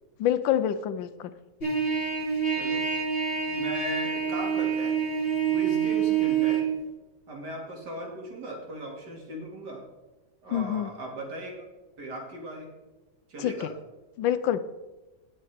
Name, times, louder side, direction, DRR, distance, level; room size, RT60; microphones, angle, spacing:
voice 1, 0.2-1.3 10.5-10.9 13.4-13.7 14.2-14.6, left 10 dB, 80° left, 12 dB, 1.3 m, -26 dB
Trumpet, 1.6-6.6, right 7 dB, 30° left, 2.5 m, -27 dB
voice 2, 2.5-2.9 3.5-5.0 5.5-6.6 7.3-9.8 10.4-11.5 12.0-12.7 13.3-13.7, right 1 dB, 55° right, 0 dB, 2.9 m, -37 dB
17.5 x 6.5 x 3.6 m, 1.1 s
omnidirectional pair, 2.2 m